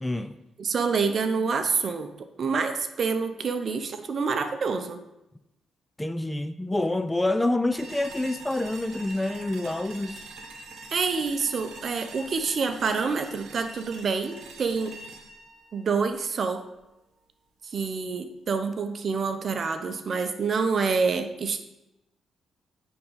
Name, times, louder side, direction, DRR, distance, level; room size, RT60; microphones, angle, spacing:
voice 1, 0.0-0.4 6.0-10.2, left 2 dB, 10° left, 11 dB, 0.4 m, -27 dB
voice 2, 0.6-5.0 10.9-15.0 15.7-16.6 17.6-21.6, right 5 dB, 55° right, 8 dB, 0.7 m, -27 dB
sound 1, 7.7-16.8, right 3 dB, 75° right, 1.1 m, -45 dB
9.3 x 3.7 x 4.7 m, 0.92 s
cardioid pair, 80°, 0 cm